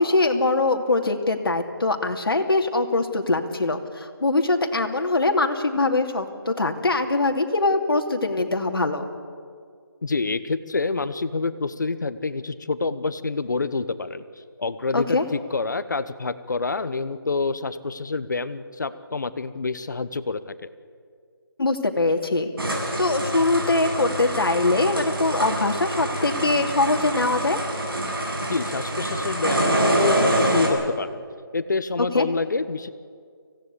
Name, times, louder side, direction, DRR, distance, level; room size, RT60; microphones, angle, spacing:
voice 1, 0.0-9.0 14.9-15.2 21.6-27.6 32.1-32.3, left 2 dB, 70° left, 4 dB, 2.7 m, -22 dB
voice 2, 10.0-14.2 14.6-20.7 28.4-31.1 31.5-32.9, left 3 dB, 50° left, 14 dB, 1.0 m, -27 dB
sound 1, 22.6-30.7, right 1 dB, 70° right, 7.2 m, -25 dB
24.5 x 17.0 x 8.4 m, 2.1 s
figure-of-eight pair, 170°, 13 cm